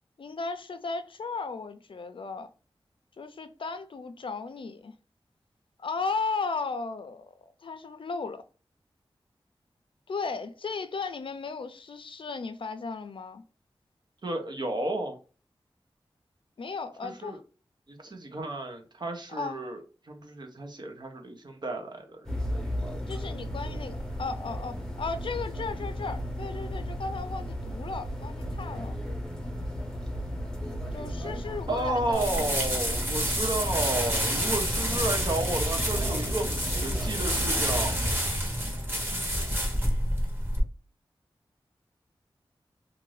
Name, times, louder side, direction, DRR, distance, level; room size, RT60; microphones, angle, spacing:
voice 1, 0.2-2.5 3.2-4.9 5.8-8.4 10.1-13.4 16.6-17.4 19.3-19.6 23.1-29.0 30.9-32.5 39.1-39.3, left 4 dB, 65° left, 0.4 m, -35 dB
voice 2, 14.2-15.2 17.0-17.4 17.9-22.4 31.7-38.0, right 2 dB, 50° right, 0.8 m, -32 dB
sound 1, 22.2-38.2, equal, 5° left, 0.8 m, -34 dB
sound 2, 32.1-40.6, equal, 20° right, 1.2 m, -29 dB
2.6 x 2.5 x 3.2 m
wide cardioid pair, 70°, 9 cm